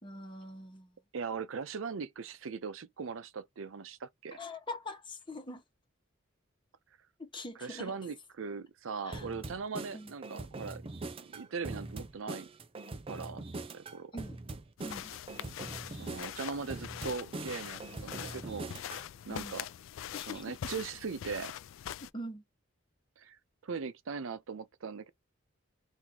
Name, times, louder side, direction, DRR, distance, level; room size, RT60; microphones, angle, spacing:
voice 1, 0.0-0.9 4.3-5.6 7.2-7.9 9.0-9.3 9.9-10.1 14.1-14.4 14.8-15.1 19.3-19.6 20.1-20.6 22.1-22.4, left 1 dB, 25° left, 1.2 m, -43 dB
voice 2, 1.1-4.4 7.6-10.8 11.3-12.5 13.1-13.4 13.7-14.1 15.9-18.7 19.3-19.7 20.3-21.5 23.2-23.4 23.6-25.1, right 5 dB, 90° right, 0.6 m, -40 dB
sound 1, 9.1-19.1, right 2 dB, 30° right, 0.5 m, -42 dB
sound 2, 14.8-22.1, left 10 dB, 80° left, 0.3 m, -43 dB
3.0 x 2.7 x 3.7 m
head